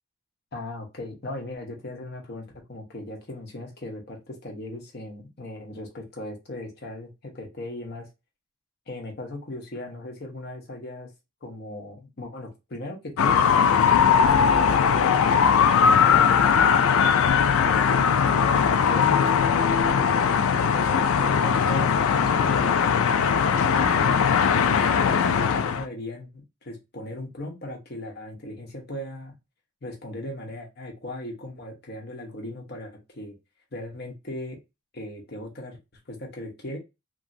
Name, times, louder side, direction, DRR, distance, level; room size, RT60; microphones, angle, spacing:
voice 1, 0.5-8.1 8.9-11.1 11.4-17.4 17.6-20.3 20.7-23.1 23.7-29.3 29.8-33.4 33.7-34.6 34.9-35.8 36.1-36.8, left 1 dB, 50° left, 1 dB, 0.9 m, -38 dB
sound 1, 13.2-25.8, left 7 dB, 80° left, 0.3 m, -20 dB
3.0 x 2.6 x 2.6 m, 0.25 s
head